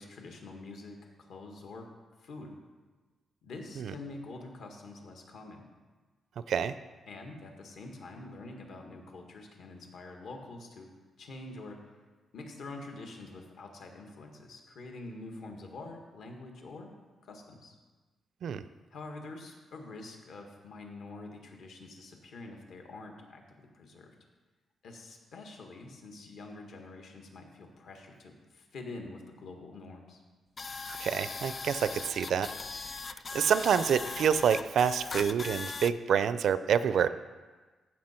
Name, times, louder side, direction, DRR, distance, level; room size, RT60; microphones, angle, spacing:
voice 1, 0.0-1.9 2.2-2.5 3.4-5.6 7.1-10.9 11.2-11.8 12.3-16.9 17.2-17.7 18.9-24.1 24.8-30.2, left 2 dB, 70° left, 2 dB, 1.6 m, -46 dB
sound 1, 30.6-35.9, left 4 dB, 35° left, 0.3 m, -39 dB
voice 2, 30.9-32.5 33.3-37.1, right 8 dB, 65° right, 14 dB, 0.4 m, -27 dB
15.0 x 5.9 x 4.4 m, 1.3 s
wide cardioid pair, 145°, 0 cm